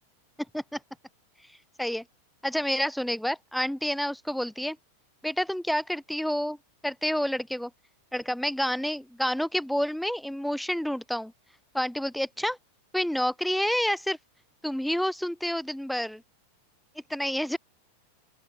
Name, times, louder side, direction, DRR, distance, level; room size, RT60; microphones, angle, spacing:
voice 1, 2.4-4.8 5.2-6.6 6.8-7.7 8.1-11.3 11.7-12.6 12.9-14.2 14.6-16.2 17.1-17.6, equal, ahead, 0.4 m, -29 dB
open air
figure-of-eight pair, 90°, 0 cm